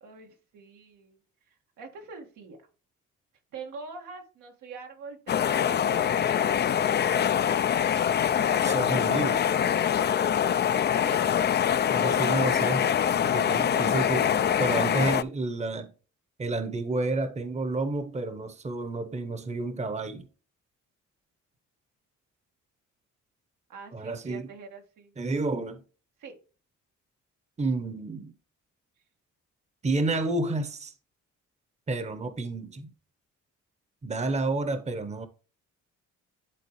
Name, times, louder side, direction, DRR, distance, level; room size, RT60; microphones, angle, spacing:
voice 1, 0.0-1.2 1.8-2.6 3.5-6.7 9.9-10.3 10.6-11.4 11.9-12.6 23.7-25.1 26.2-26.3, right 4 dB, 90° right, 1.8 m, -45 dB
sound 1, 5.3-15.2, left 9 dB, 35° left, 0.4 m, -24 dB
voice 2, 8.6-9.5 11.9-12.9 13.2-14.3 14.6-15.9 16.4-20.3 23.9-24.5 25.2-25.8 27.6-28.3 29.8-30.9 31.9-32.9 34.0-35.3, right 2 dB, 20° right, 0.9 m, -30 dB
11.0 x 3.9 x 3.1 m
cardioid pair, 90°, 30 cm